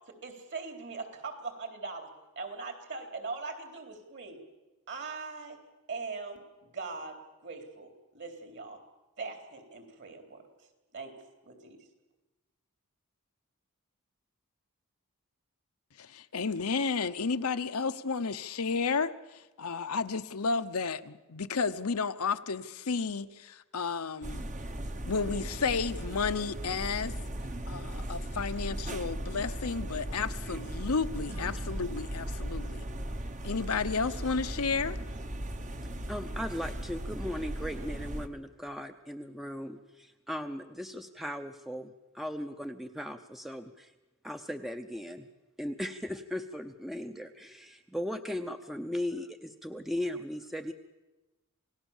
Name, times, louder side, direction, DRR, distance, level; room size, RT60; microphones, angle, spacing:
voice 1, 0.1-4.4 4.9-5.6 5.9-8.8 9.2-10.4 10.9-11.2 11.4-11.8, right 4 dB, 55° right, 3.7 m, -41 dB
voice 2, 16.0-24.5 25.0-27.1 27.7-32.8 33.4-35.0, left 5 dB, 70° left, 0.9 m, -32 dB
sound 1, 24.2-38.3, right 1 dB, 35° right, 1.1 m, -37 dB
sound 2, 31.3-36.1, right 2 dB, 80° right, 2.3 m, -54 dB
voice 3, 36.1-43.9 44.2-45.3 45.6-50.7, left 1 dB, ahead, 0.7 m, -37 dB
27.5 x 18.0 x 7.3 m
head